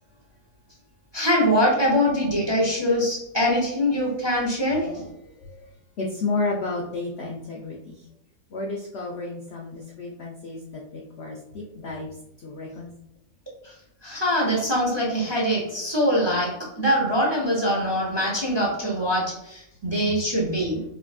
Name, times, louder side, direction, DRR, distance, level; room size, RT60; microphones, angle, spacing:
voice 1, 1.1-5.1 13.6-13.7 14.0-20.8, equal, 25° right, -4 dB, 0.6 m, -23 dB
voice 2, 6.0-8.0 8.5-10.6 10.9-12.1 12.4-12.9, left 3 dB, 85° left, -2 dB, 0.5 m, -31 dB
5.4 x 2.6 x 2.4 m, 0.83 s
omnidirectional pair, 1.8 m